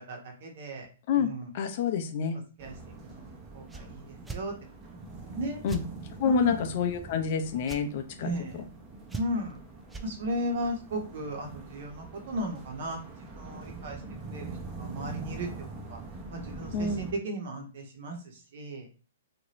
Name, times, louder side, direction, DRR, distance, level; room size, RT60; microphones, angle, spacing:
voice 1, 0.1-0.9 1.1-1.5 2.6-2.7 3.0-3.2 3.5-4.5 5.2-5.6 6.2-6.6 8.2-8.6 9.1-9.6 10.0-13.0 13.3-14.0 14.3-14.5 14.8-15.5 15.9-16.0 16.3-18.9, right 1 dB, 60° right, 2 dB, 1.0 m, -35 dB
voice 2, 1.5-2.4 5.6-5.8 6.2-8.6 16.7-17.1, left 7 dB, 50° left, 6 dB, 0.5 m, -28 dB
sound 1, 2.6-17.1, right 3 dB, 25° right, 0.8 m, -44 dB
sound 2, 3.7-3.9 4.2-4.4 5.7-5.9 7.6-7.8 9.1-9.5 9.9-10.1, right 3 dB, 5° right, 0.3 m, -38 dB
2.8 x 2.6 x 3.0 m, 0.37 s
hypercardioid pair, 140°, 0 cm